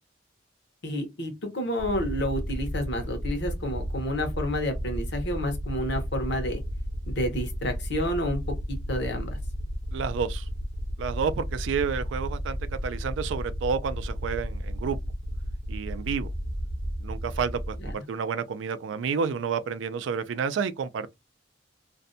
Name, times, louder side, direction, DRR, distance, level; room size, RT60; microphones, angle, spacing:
voice 1, 0.8-6.6 7.1-8.4 8.7-9.4 17.8-17.9, equal, 65° left, 0.9 m, -30 dB
sound 1, 1.8-17.9, equal, 55° right, 0.7 m, -33 dB
voice 2, 9.9-10.5 11.0-15.0 15.7-16.3 17.0-21.1, right 6 dB, 85° right, 0.3 m, -30 dB
2.5 x 2.1 x 2.6 m
head